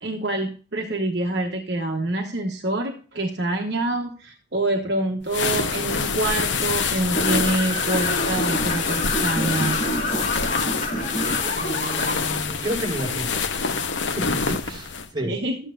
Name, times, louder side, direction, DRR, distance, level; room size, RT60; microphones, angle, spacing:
voice 1, 0.0-9.8 15.2-15.6, right 2 dB, 60° right, 2 dB, 1.2 m, -26 dB
sound 1, 5.3-15.1, left 5 dB, 75° left, 0.9 m, -26 dB
sound 2, 7.1-12.1, left 1 dB, 40° left, 2.7 m, -27 dB
voice 2, 11.6-13.4 14.1-15.4, right 1 dB, 25° right, -3 dB, 4.3 m, -31 dB
13.0 x 9.1 x 2.5 m, 0.38 s
head